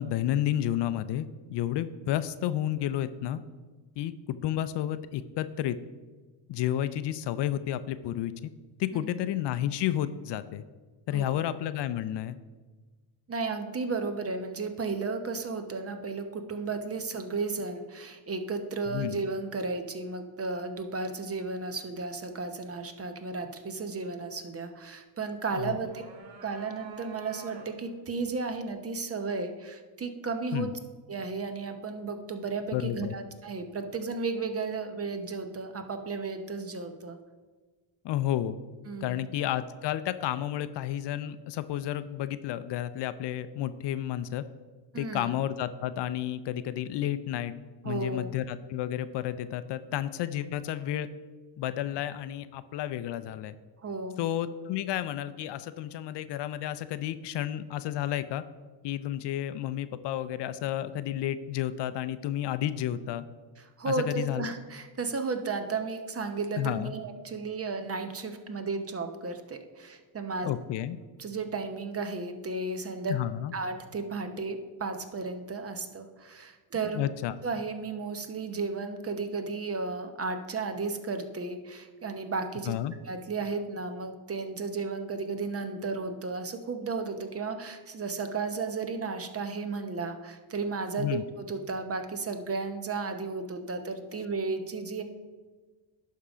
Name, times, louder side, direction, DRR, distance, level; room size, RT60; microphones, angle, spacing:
voice 1, 0.0-3.4 4.0-5.8 6.5-8.3 8.8-10.6 11.1-12.4 18.9-19.2 25.5-25.8 30.5-30.7 32.7-33.1 38.0-38.6 39.0-44.4 45.0-47.5 47.8-51.1 51.6-53.5 54.2-58.4 58.8-63.2 63.9-64.5 66.6-66.9 70.4-71.0 73.1-73.5 76.9-77.3 82.7-82.9 91.0-91.2, left 12 dB, 60° left, 13 dB, 0.5 m, -31 dB
voice 2, 13.3-26.0 26.4-30.7 31.1-37.2 38.9-39.2 44.9-45.3 47.8-48.3 53.8-54.2 63.8-70.5 71.2-73.1 73.5-77.0 77.4-82.7 83.0-95.0, right 4 dB, 30° right, 7 dB, 0.8 m, -34 dB
sound 1, 25.7-28.0, right 4 dB, 65° right, 1.4 m, -47 dB
11.0 x 3.7 x 4.9 m, 1.3 s
cardioid pair, 95°, 49 cm